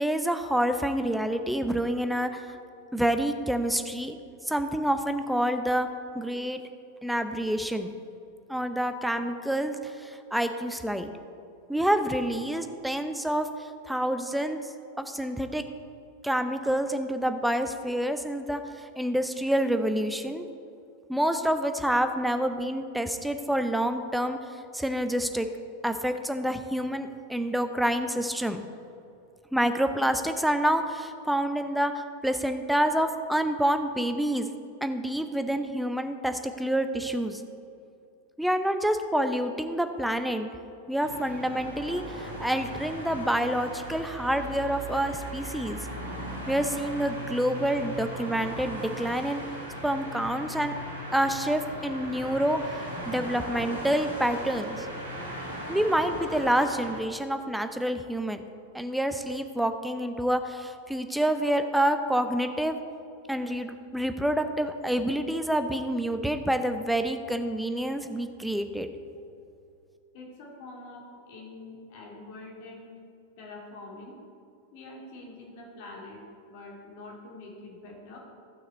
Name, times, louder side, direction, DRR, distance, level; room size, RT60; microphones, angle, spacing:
voice 1, 0.0-2.6 2.9-4.2 4.4-5.9 6.1-6.6 7.0-7.9 8.5-11.1 11.7-14.6 15.0-15.7 16.2-20.5 21.1-24.4 24.7-25.5 25.8-28.6 29.5-34.5 34.8-37.4 38.4-40.5 40.9-45.8 46.5-49.4 49.8-50.7 51.1-54.9 55.7-58.5 58.7-62.8 63.3-68.9, right 1 dB, ahead, 8 dB, 0.6 m, -28 dB
sound 1, 41.0-57.0, right 1 dB, 80° right, 1.7 m, -38 dB
voice 2, 70.1-72.9 73.4-74.2 74.7-78.2, left 2 dB, 50° left, -1 dB, 2.3 m, -45 dB
15.0 x 6.0 x 4.1 m, 2.5 s
figure-of-eight pair, 90°, 0 cm